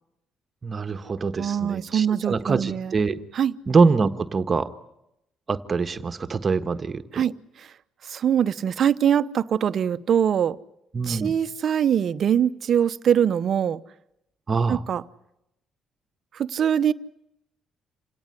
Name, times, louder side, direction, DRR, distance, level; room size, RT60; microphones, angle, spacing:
voice 1, 0.6-3.2 3.7-4.7 5.5-7.2 10.9-11.3 14.5-14.8, right 4 dB, 40° right, 9 dB, 1.4 m, -24 dB
voice 2, 1.4-3.0 3.3-3.5 7.1-7.3 7.6-7.7 8.0-10.6 11.1-13.8 14.7-15.0 16.3-16.9, right 9 dB, 60° right, 14 dB, 0.9 m, -23 dB
27.0 x 18.0 x 9.9 m, 0.85 s
supercardioid pair, 60°, 0 cm